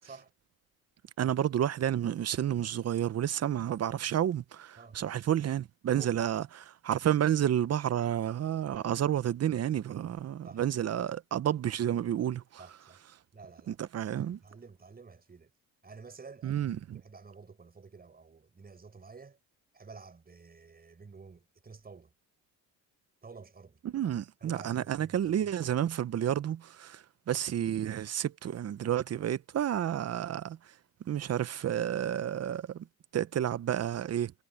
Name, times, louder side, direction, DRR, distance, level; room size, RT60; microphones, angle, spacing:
voice 1, 1.2-12.6 13.7-14.4 16.4-17.0 23.8-30.6 31.1-32.9 33.1-34.3, right 10 dB, 45° right, 0.9 m, -30 dB
voice 2, 12.6-13.0 13.3-13.8 14.2-15.5 15.8-19.4 19.7-22.1 23.2-23.8 24.4-25.2, right 4 dB, 25° right, 5.4 m, -51 dB
cardioid pair, 90°, 34 cm